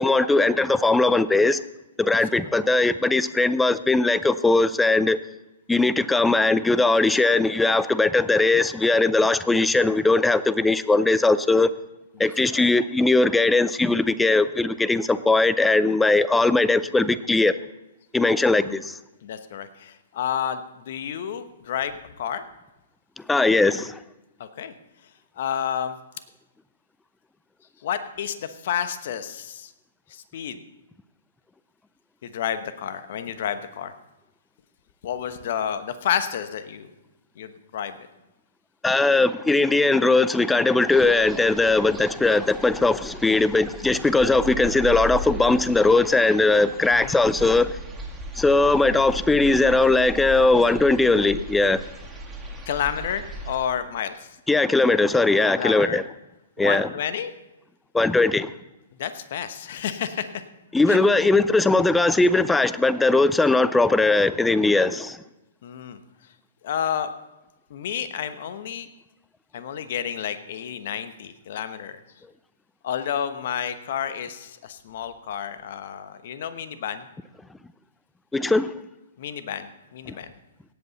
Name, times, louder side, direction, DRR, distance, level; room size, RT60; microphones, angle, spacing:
voice 1, 0.0-1.6 2.0-5.2 5.7-11.7 12.2-17.5 18.1-19.0 23.3-24.0 38.8-47.8 48.3-51.8 54.5-56.0 56.6-56.9 57.9-58.5 60.7-65.2 78.3-78.7, left 3 dB, 5° left, 0.4 m, -19 dB
voice 2, 12.2-12.7 18.6-18.8 19.2-22.4 24.4-24.7 25.4-26.0 27.8-29.7 30.1-30.6 32.2-33.9 35.0-36.9 37.4-38.0 46.9-47.2 52.7-54.3 55.5-56.0 56.6-57.3 59.0-60.3 60.9-61.0 65.6-66.0 66.6-67.1 67.7-68.9 69.5-72.0 72.8-77.1 79.2-80.3, left 9 dB, 55° left, 1.0 m, -30 dB
sound 1, 40.9-53.6, right 1 dB, 10° right, 2.0 m, -37 dB
17.5 x 8.1 x 4.1 m
hypercardioid pair, 125°, 0 cm